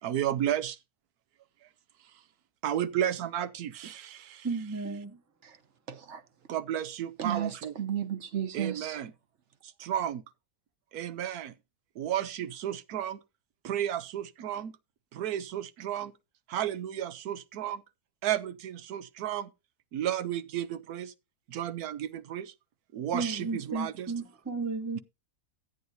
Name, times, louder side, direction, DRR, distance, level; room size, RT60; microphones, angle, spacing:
voice 1, 0.0-0.8 2.6-4.5 6.5-7.7 8.5-9.1 9.6-10.2 10.9-11.5 12.0-13.2 13.6-14.8 15.1-16.1 16.5-17.8 18.2-19.5 19.9-21.1 21.5-22.5 22.9-24.1, right 11 dB, 85° right, 1.2 m, -33 dB
voice 2, 4.4-5.2 23.1-25.0, right 4 dB, 15° right, 0.8 m, -33 dB
voice 3, 5.9-6.2 7.2-9.0, right 9 dB, 55° right, 1.2 m, -34 dB
13.0 x 9.3 x 2.7 m
omnidirectional pair, 1.6 m